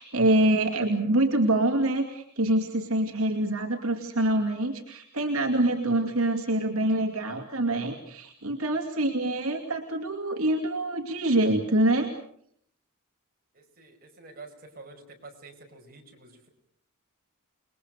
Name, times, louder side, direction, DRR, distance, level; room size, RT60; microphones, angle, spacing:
voice 1, 0.0-12.1, right 1 dB, 75° right, 2 dB, 2.6 m, -25 dB
voice 2, 13.5-16.5, right 3 dB, 45° right, 1 dB, 5.6 m, -48 dB
29.5 x 21.5 x 6.5 m, 0.66 s
head